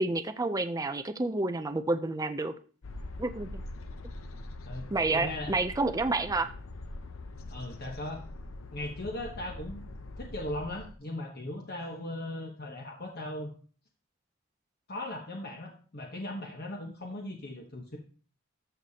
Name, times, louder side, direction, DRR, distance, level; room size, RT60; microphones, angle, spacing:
voice 1, 0.0-2.5 3.2-3.6 4.9-6.5, right 2 dB, 15° right, 10 dB, 0.4 m, -29 dB
sound 1, 2.8-10.9, left 2 dB, 75° left, 0.7 m, -43 dB
voice 2, 4.7-5.6 7.5-8.3 8.7-9.9 10.2-13.5 14.9-18.0, left 1 dB, 45° left, 1 dB, 1.1 m, -38 dB
13.5 x 6.7 x 2.8 m, 0.41 s
head